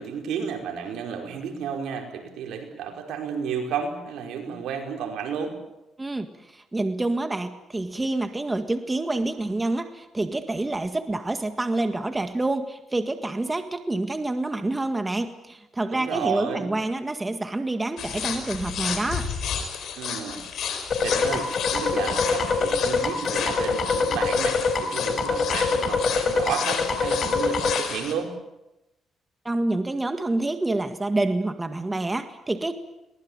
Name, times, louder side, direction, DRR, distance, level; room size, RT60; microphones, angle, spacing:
voice 1, 0.0-5.6 15.9-16.7 20.0-20.4 21.0-28.3, right 6 dB, 85° right, 3 dB, 5.1 m, -32 dB
voice 2, 6.0-19.3 29.5-32.7, right 2 dB, 15° right, 7 dB, 1.8 m, -27 dB
sound 1, 18.0-28.1, left 7 dB, 70° left, 4.7 m, -32 dB
sound 2, 20.9-27.8, left 4 dB, 50° left, 4.0 m, -24 dB
23.0 x 19.5 x 8.8 m, 0.94 s
cardioid pair, 90°, 0 cm